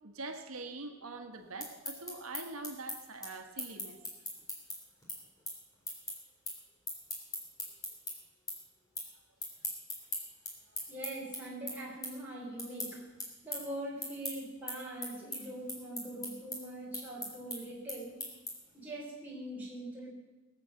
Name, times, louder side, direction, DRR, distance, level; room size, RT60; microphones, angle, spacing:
voice 1, 0.0-4.0, right 3 dB, 85° right, 5 dB, 1.5 m, -43 dB
sound 1, 1.4-8.1 8.5-9.1 9.4-18.8, left 1 dB, 15° left, 3.1 m, -40 dB
voice 2, 10.9-13.1 13.4-18.2 18.7-20.1, right 1 dB, 10° right, -5 dB, 3.4 m, -42 dB
20.5 x 7.4 x 7.5 m, 1.2 s
head